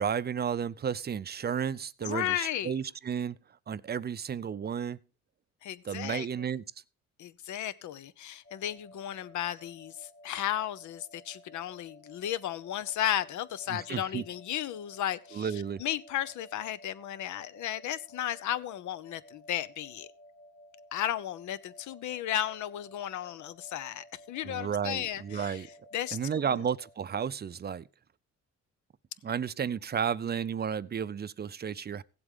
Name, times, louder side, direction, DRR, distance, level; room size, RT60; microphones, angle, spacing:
voice 1, 0.0-3.4 3.7-5.0 5.8-6.6 13.7-14.2 15.3-15.8 24.4-25.7 26.1-27.9 29.2-32.0, right 7 dB, 35° right, 0.5 m, -32 dB
voice 2, 2.0-2.7 5.6-6.3 7.2-20.1 20.9-25.7 25.9-26.6, left 11 dB, 75° left, 0.8 m, -34 dB
sound 1, 8.4-27.1, left 1 dB, 50° left, 2.3 m, -55 dB
16.0 x 7.9 x 3.7 m
cardioid pair, 90°, 30 cm